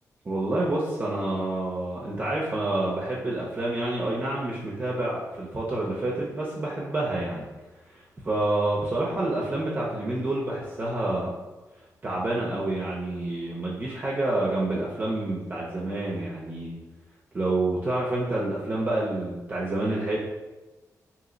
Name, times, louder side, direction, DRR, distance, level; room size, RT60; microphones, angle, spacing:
voice 1, 0.2-7.5 7.9-11.3 12.0-16.7 17.3-20.2, right 2 dB, 30° right, -5 dB, 0.5 m, -28 dB
2.8 x 2.0 x 3.7 m, 1.2 s
wide cardioid pair, 120°, 6 cm